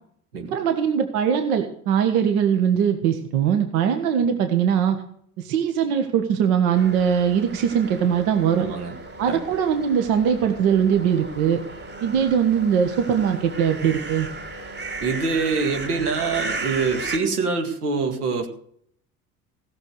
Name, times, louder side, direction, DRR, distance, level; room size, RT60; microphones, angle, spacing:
voice 1, 0.4-5.0 5.4-8.7 9.2-11.6 12.0-14.3, right 8 dB, 65° right, 6 dB, 1.6 m, -21 dB
sound 1, 6.7-17.2, right 2 dB, 25° right, 3.0 m, -35 dB
voice 2, 8.6-8.9 9.3-9.4 15.0-18.5, right 4 dB, 85° right, 4 dB, 2.0 m, -25 dB
16.0 x 7.0 x 6.5 m, 0.64 s
hypercardioid pair, 65°, 45 cm